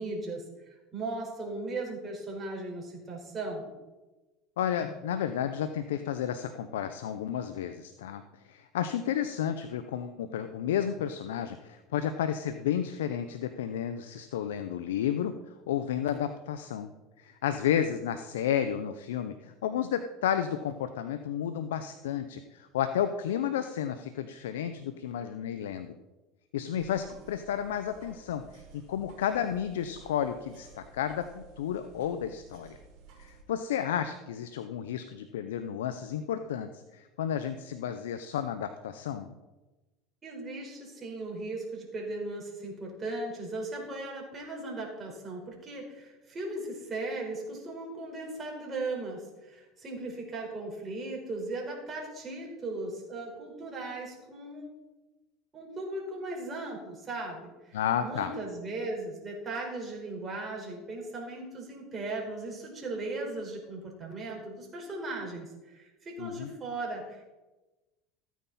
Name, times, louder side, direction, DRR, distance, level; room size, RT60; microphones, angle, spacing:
voice 1, 0.0-3.8 40.2-54.6 55.5-67.2, right 2 dB, 30° right, -1 dB, 4.6 m, -37 dB
voice 2, 4.6-16.9 17.2-26.0 26.5-32.8 33.2-39.3 57.7-58.3 66.2-66.5, left 9 dB, 90° left, 9 dB, 0.7 m, -32 dB
sound 1, 26.8-33.4, right 4 dB, 55° right, 4.4 m, -54 dB
14.5 x 9.4 x 4.2 m, 1.1 s
supercardioid pair, 100°, 0 cm